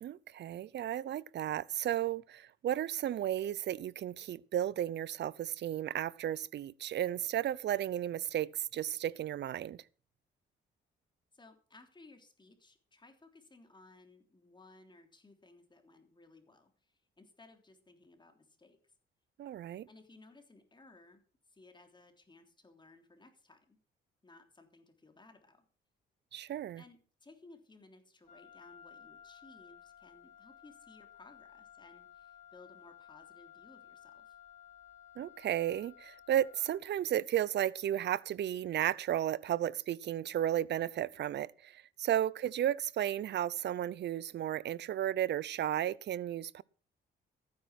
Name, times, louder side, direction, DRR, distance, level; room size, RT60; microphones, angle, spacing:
voice 1, 0.0-9.8 19.4-19.9 26.3-26.8 35.2-46.6, right 11 dB, 60° right, 0.6 m, -34 dB
voice 2, 11.3-18.9 19.9-21.2 21.5-23.8 24.2-25.7 26.8-34.4 42.4-42.5, left 2 dB, 25° left, 3.3 m, -59 dB
Wind instrument woodwind instrument, 28.3-37.0, left 10 dB, 40° left, 5.3 m, -56 dB
14.5 x 9.6 x 6.0 m
cardioid pair, 90°, 20 cm